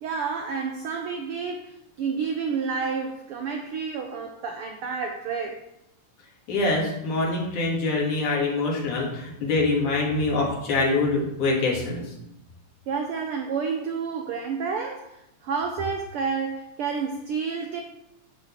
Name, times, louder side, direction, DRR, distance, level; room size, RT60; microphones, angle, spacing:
voice 1, 0.0-5.7 12.9-17.8, right 5 dB, 85° right, 1.2 m, -30 dB
voice 2, 6.5-12.0, left 3 dB, 85° left, 3.8 m, -24 dB
10.5 x 4.1 x 7.3 m
omnidirectional pair, 3.4 m